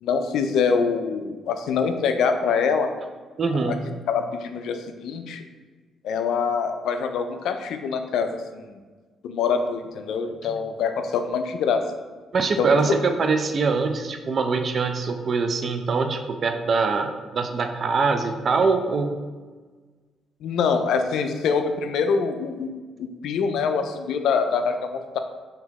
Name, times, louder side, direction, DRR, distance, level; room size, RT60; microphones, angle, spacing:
voice 1, 0.0-2.9 3.7-3.8 4.1-5.4 6.0-8.8 9.2-11.9 12.6-13.0 20.4-22.7 23.0-25.2, left 5 dB, 80° left, 7 dB, 0.3 m, -24 dB
voice 2, 3.4-3.8 10.4-10.5 12.3-19.2, right 4 dB, 50° right, 6 dB, 0.4 m, -23 dB
3.6 x 2.8 x 3.6 m, 1.4 s
cardioid pair, 90°, 0 cm